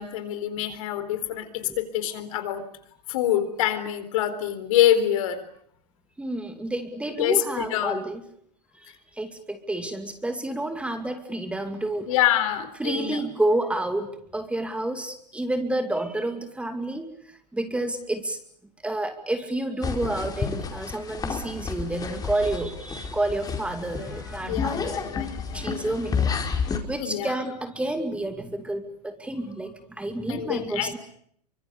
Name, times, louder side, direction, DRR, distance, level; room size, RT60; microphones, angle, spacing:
voice 1, 0.0-2.7 3.1-5.4 7.2-8.0 12.1-13.2 24.4-25.6 27.0-27.4 30.3-31.0, left 11 dB, 55° left, 10 dB, 4.1 m, -26 dB
voice 2, 6.2-8.2 8.8-8.9 9.1-12.1 12.8-17.1 17.5-18.4 18.8-25.0 25.5-26.4 26.9-31.0, right 1 dB, 5° right, 7 dB, 2.5 m, -29 dB
sound 1, 19.8-26.8, left 5 dB, 20° left, 4.5 m, -30 dB
28.5 x 25.0 x 6.9 m, 0.66 s
hypercardioid pair, 105°, 21 cm